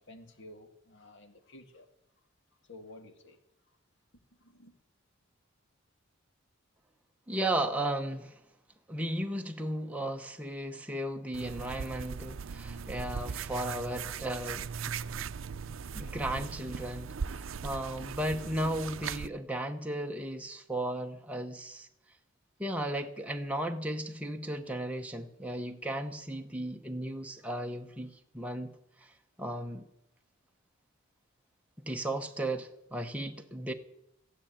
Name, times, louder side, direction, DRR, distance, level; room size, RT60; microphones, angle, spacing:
voice 1, 0.0-1.9 2.6-3.4 4.4-4.7, left 1 dB, 60° left, 6 dB, 1.9 m, -52 dB
voice 2, 7.3-8.3 8.9-14.7 15.9-21.9 22.6-28.7 29.0-29.1 29.4-29.8 31.9-33.7, right 1 dB, 5° right, 3 dB, 0.8 m, -35 dB
sound 1, 11.3-19.3, right 6 dB, 65° right, 0.5 m, -39 dB
14.0 x 9.6 x 8.9 m, 0.81 s
head